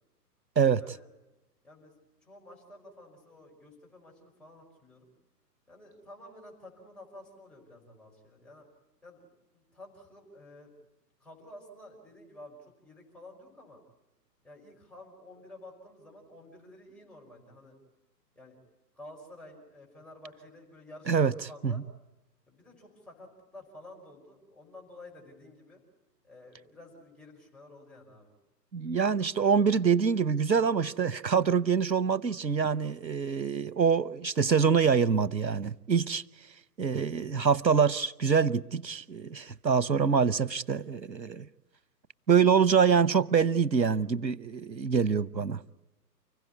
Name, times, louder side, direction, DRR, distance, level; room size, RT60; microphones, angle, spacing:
voice 1, 0.8-1.1 1.6-1.9 2.2-5.1 5.7-8.6 9.0-10.7 11.2-13.8 14.4-17.8 18.4-18.6 18.9-21.8 22.5-25.8 26.2-28.3, left 1 dB, ahead, 5.3 m, -51 dB
voice 2, 28.7-36.2 36.8-41.5 42.3-45.6, right 6 dB, 85° right, 1.0 m, -25 dB
30.0 x 16.5 x 9.5 m
figure-of-eight pair, 130°, 50 cm